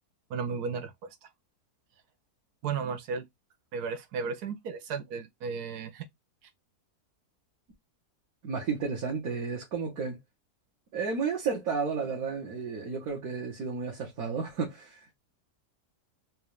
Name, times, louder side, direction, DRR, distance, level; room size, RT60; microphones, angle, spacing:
voice 1, 0.3-0.9 1.2-1.3 2.6-3.2 3.7-6.1, right 5 dB, 80° right, 1.3 m, -34 dB
voice 2, 8.4-10.2 10.9-15.1, right 5 dB, 65° right, 1.6 m, -32 dB
4.2 x 2.4 x 3.1 m
omnidirectional pair, 1.7 m